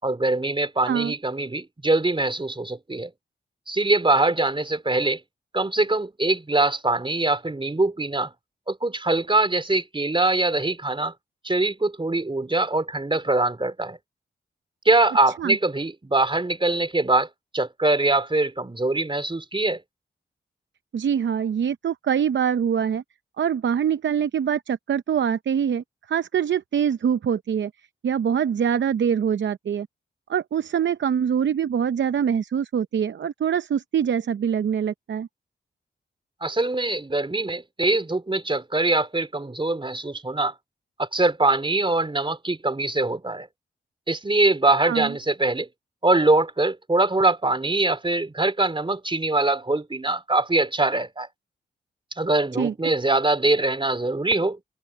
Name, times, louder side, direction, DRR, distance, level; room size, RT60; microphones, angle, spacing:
voice 1, 0.0-3.1 3.7-5.2 5.5-8.3 8.7-11.1 11.4-14.0 14.9-19.8 36.4-40.5 41.0-43.5 44.1-45.7 46.0-51.3 52.2-54.6, right 2 dB, 25° right, 3.5 m, -23 dB
voice 2, 20.9-23.0 23.4-27.7 28.0-29.9 30.3-35.3 44.9-45.1 52.6-52.9, right 8 dB, 70° right, 0.7 m, -24 dB
cardioid pair, 55°, 20 cm